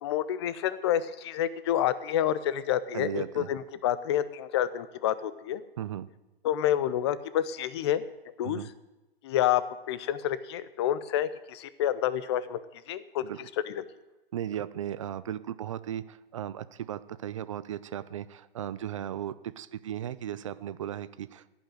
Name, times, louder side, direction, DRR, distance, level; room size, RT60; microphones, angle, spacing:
voice 1, 0.0-5.6 6.4-8.0 8.4-8.6 9.2-9.6 9.9-12.6 12.9-13.2 13.7-13.8, left 11 dB, 25° left, 15 dB, 0.5 m, -28 dB
voice 2, 2.9-3.5 5.8-6.1 8.4-8.7 13.2-13.5 14.3-21.5, right 10 dB, 35° right, 15 dB, 0.4 m, -36 dB
14.5 x 5.7 x 9.1 m, 1.1 s
hypercardioid pair, 145°, 30 cm